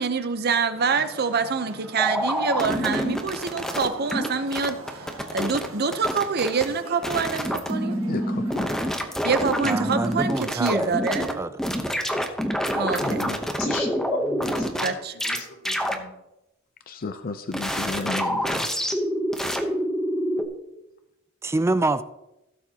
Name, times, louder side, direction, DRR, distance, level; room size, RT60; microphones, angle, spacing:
voice 1, 0.0-8.0 9.2-11.4 12.7-13.3 14.8-15.1, right 5 dB, 50° right, 0.8 m, -26 dB
sound 1, 0.7-10.8, right 2 dB, 80° right, 1.7 m, -43 dB
sound 2, 2.0-4.3 4.5-5.7 5.9-6.7 7.0-11.3 11.6-14.9 15.2-15.4 15.7-16.0 17.5-20.5, equal, ahead, 0.8 m, -26 dB
voice 2, 8.1-8.7 13.0-13.5 16.9-18.7, left 3 dB, 45° left, 0.5 m, -33 dB
voice 3, 9.6-11.0 11.3-11.6 21.4-22.0, right 2 dB, 15° right, 0.3 m, -26 dB
voice 4, 13.6-16.1, left 2 dB, 90° left, 2.5 m, -35 dB
16.5 x 7.2 x 2.9 m
head